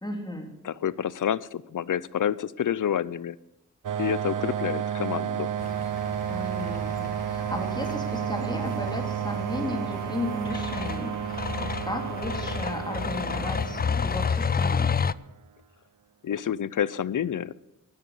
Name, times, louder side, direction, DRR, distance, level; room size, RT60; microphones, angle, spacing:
voice 1, 0.0-0.5 6.3-15.0, left 1 dB, 15° left, 2 dB, 2.6 m, -35 dB
voice 2, 0.6-3.4 4.0-5.5 16.2-17.5, left 9 dB, 80° left, 20 dB, 0.6 m, -28 dB
sound 1, 3.8-15.2, right 9 dB, 90° right, 0.6 m, -32 dB
sound 2, 5.6-15.1, left 6 dB, 30° left, 0.4 m, -31 dB
11.5 x 11.0 x 7.1 m, 0.95 s
wide cardioid pair, 75°, 31 cm